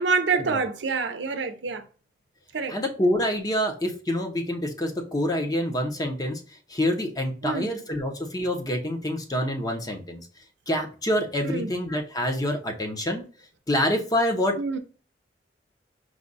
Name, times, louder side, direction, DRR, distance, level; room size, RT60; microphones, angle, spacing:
voice 1, 0.0-1.8 2.5-2.8 7.4-7.7 11.4-11.7 14.6-14.8, right 4 dB, 85° right, 0.6 m, -26 dB
voice 2, 2.7-6.4 6.7-10.2 10.7-13.2 13.7-14.6, left 1 dB, 20° left, 0.7 m, -26 dB
4.8 x 2.3 x 3.9 m
head